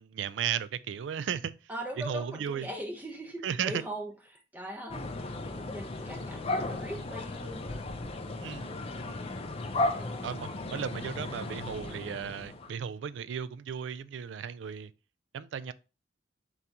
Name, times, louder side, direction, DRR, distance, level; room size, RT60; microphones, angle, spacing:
voice 1, 0.0-1.5 2.0-2.7 3.4-3.8 8.4-8.7 10.2-14.9 15.3-15.7, right 8 dB, 85° right, 0.3 m, -35 dB
voice 2, 1.7-7.8 9.9-10.2, equal, 10° right, 0.7 m, -41 dB
sound 1, 4.9-12.7, left 2 dB, 30° left, 0.4 m, -35 dB
3.9 x 2.9 x 3.4 m
head